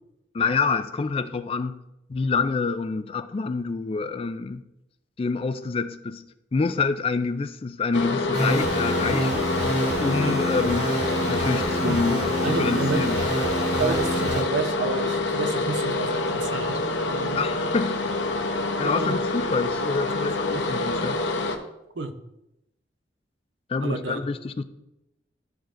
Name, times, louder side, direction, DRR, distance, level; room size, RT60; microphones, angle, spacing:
voice 1, 0.3-1.8 2.1-4.6 5.2-6.2 6.5-9.5 10.0-10.9 11.3-13.2 17.3-18.0 18.8-21.2 23.7-24.6, left 4 dB, 30° left, 12 dB, 0.3 m, -27 dB
sound 1, 7.9-21.6, left 2 dB, 90° left, 0.7 m, -27 dB
sound 2, 8.3-14.4, equal, 65° right, 2.3 m, -27 dB
voice 2, 12.4-13.3 13.8-17.4 18.8-19.2 20.2-20.7 22.0-22.2 23.8-24.2, right 4 dB, 90° right, 8 dB, 0.7 m, -30 dB
12.5 x 4.8 x 2.5 m, 0.88 s
head